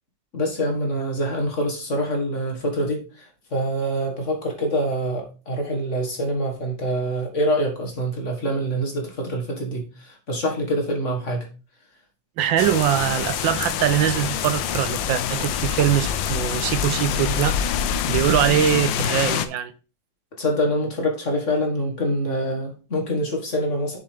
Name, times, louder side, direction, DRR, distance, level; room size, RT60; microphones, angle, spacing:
voice 1, 0.3-3.0 3.5-9.8 10.3-11.5 20.4-24.0, equal, 40° left, 1.9 m, -25 dB
voice 2, 12.4-17.6 18.1-19.7, right 11 dB, 80° right, 1.4 m, -22 dB
sound 1, 12.6-19.5, left 8 dB, 75° left, 1.4 m, -25 dB
7.0 x 6.7 x 3.4 m
omnidirectional pair, 2.1 m